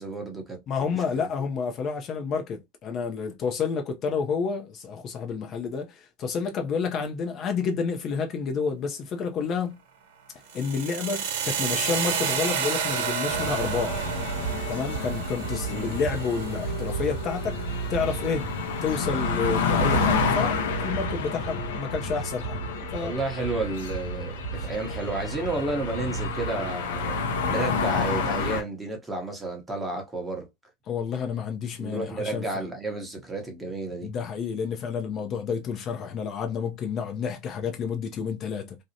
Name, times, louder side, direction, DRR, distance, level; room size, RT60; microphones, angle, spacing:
voice 1, 0.0-1.3 15.7-16.0 22.7-27.2 27.5-30.5 31.8-34.1, right 2 dB, 10° right, 0.8 m, -32 dB
voice 2, 0.7-9.8 10.5-14.1 14.7-17.6 17.9-18.5 18.8-22.6 22.9-23.2 24.6-24.7 30.9-32.7 34.0-38.8, left 6 dB, 40° left, 0.5 m, -30 dB
sound 1, 10.5-18.5, right 7 dB, 75° right, 0.6 m, -31 dB
sound 2, 13.3-28.6, left 2 dB, 85° left, 0.6 m, -29 dB
2.6 x 2.0 x 2.7 m
supercardioid pair, 120°, 0 cm